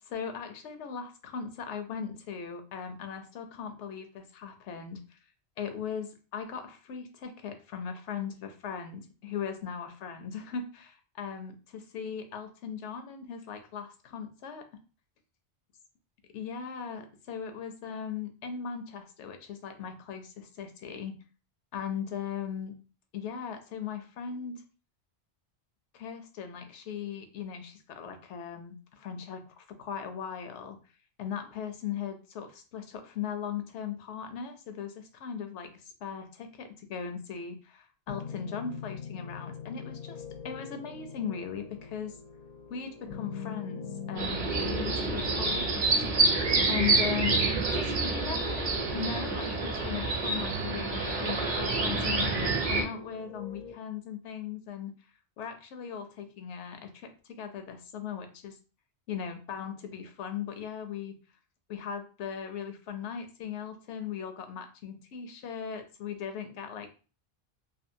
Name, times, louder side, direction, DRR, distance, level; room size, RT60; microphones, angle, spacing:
voice 1, 0.0-5.2 5.6-14.7 16.3-21.2 21.7-22.8 23.1-24.6 25.9-30.8 31.2-42.2 42.7-45.8 46.2-46.4 46.7-47.4 47.7-48.7 48.9-54.9 55.4-58.6 59.1-61.2 61.7-66.9, left 7 dB, 85° left, 7 dB, 0.9 m, -38 dB
sound 1, 38.1-53.7, left 5 dB, 55° left, 0.5 m, -43 dB
sound 2, 44.2-52.8, right 3 dB, 50° right, 0.7 m, -28 dB
2.6 x 2.4 x 2.6 m, 0.35 s
omnidirectional pair, 1.2 m